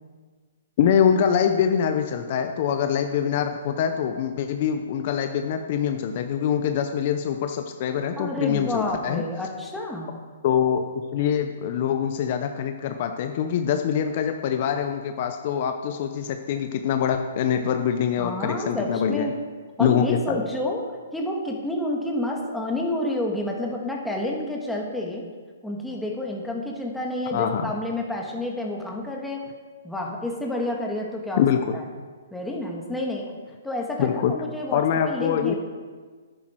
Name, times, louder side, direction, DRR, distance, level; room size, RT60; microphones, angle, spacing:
voice 1, 0.8-9.2 10.4-10.8 11.1-19.3 19.8-20.4 27.3-27.7 31.4-31.6 34.0-34.3 34.7-35.5, left 8 dB, 45° left, 6 dB, 0.8 m, -24 dB
voice 2, 8.2-10.2 18.2-19.3 19.8-20.8 21.1-25.2 25.6-29.4 29.8-31.5 31.7-31.8 32.3-33.3 33.6-35.6, left 1 dB, 5° left, -1 dB, 1.8 m, -29 dB
10.5 x 10.0 x 4.6 m, 1.5 s
hypercardioid pair, 140°, 0 cm